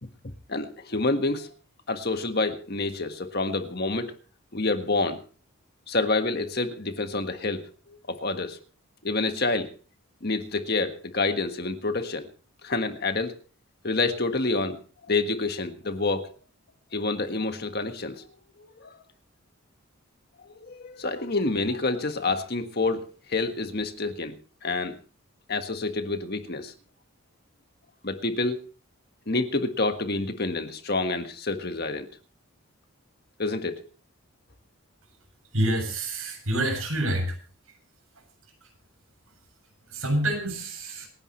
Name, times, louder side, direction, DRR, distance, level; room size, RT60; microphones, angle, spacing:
voice 1, 0.5-1.5 1.9-4.1 4.5-5.2 5.9-8.6 9.0-9.7 10.2-12.3 12.6-13.4 13.8-14.8 15.1-16.3 16.9-18.3 18.6-19.0 20.4-24.3 24.6-25.0 25.5-26.7 28.0-28.6 29.3-32.1 33.4-33.9, left 3 dB, 45° left, 7 dB, 1.6 m, -28 dB
voice 2, 35.5-37.4 38.6-38.7 39.9-41.1, right 1 dB, 75° right, 2 dB, 7.8 m, -27 dB
27.5 x 10.5 x 3.2 m, 0.37 s
head